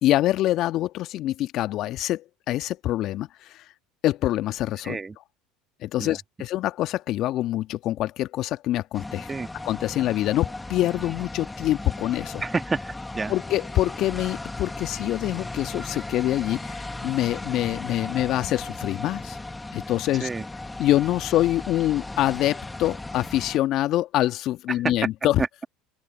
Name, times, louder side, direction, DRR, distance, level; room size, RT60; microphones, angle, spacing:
voice 1, 0.0-3.6 4.0-5.0 5.8-9.3 9.6-12.4 13.3-19.4 19.7-20.3 20.8-25.4, left 14 dB, 55° left, 1.7 m, -25 dB
voice 2, 4.8-5.2 6.0-6.2 9.3-9.5 12.4-13.3 20.2-20.4 24.7-24.8 25.4-25.6, right 4 dB, 20° right, 1.8 m, -29 dB
sound 1, 8.9-23.6, left 2 dB, 10° left, 2.2 m, -36 dB
open air
hypercardioid pair, 75°, 0 cm